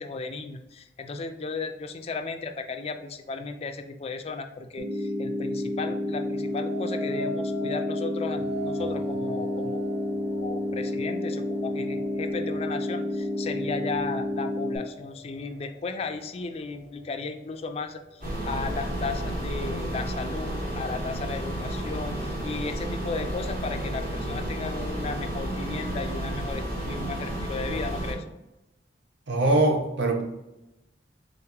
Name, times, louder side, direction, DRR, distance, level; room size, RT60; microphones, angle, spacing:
voice 1, 0.0-9.8 10.4-28.2, left 4 dB, 35° left, 6 dB, 0.3 m, -35 dB
sound 1, 4.8-14.8, left 1 dB, 90° right, 1.2 m, -30 dB
sound 2, 6.3-15.4 15.9-16.4, equal, ahead, 0.8 m, -41 dB
sound 3, 18.2-28.1, right 1 dB, 50° right, 1.4 m, -32 dB
voice 2, 29.3-30.2, right 2 dB, 70° right, 2 dB, 0.8 m, -22 dB
3.7 x 2.9 x 3.6 m, 0.94 s
head